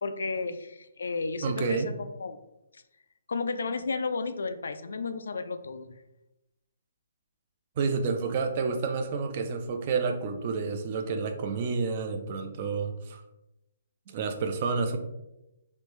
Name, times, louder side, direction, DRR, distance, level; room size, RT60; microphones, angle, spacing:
voice 1, 0.0-2.4 2.7-2.8 3.3-6.0, left 4 dB, 85° left, 10 dB, 0.3 m, -33 dB
voice 2, 1.4-1.9 7.8-13.2 14.1-15.0, right 4 dB, 30° right, 7 dB, 0.3 m, -29 dB
3.1 x 2.5 x 3.1 m, 0.92 s
hypercardioid pair, 175°, 0 cm